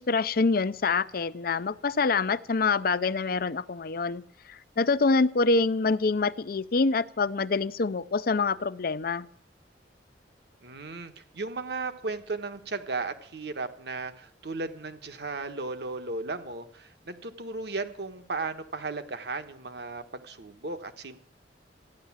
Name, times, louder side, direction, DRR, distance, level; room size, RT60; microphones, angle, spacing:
voice 1, 0.0-4.2 4.5-9.3, left 4 dB, 55° left, 16 dB, 0.6 m, -26 dB
voice 2, 10.6-21.2, right 3 dB, 65° right, 8 dB, 1.3 m, -35 dB
14.5 x 10.5 x 7.3 m, 0.64 s
head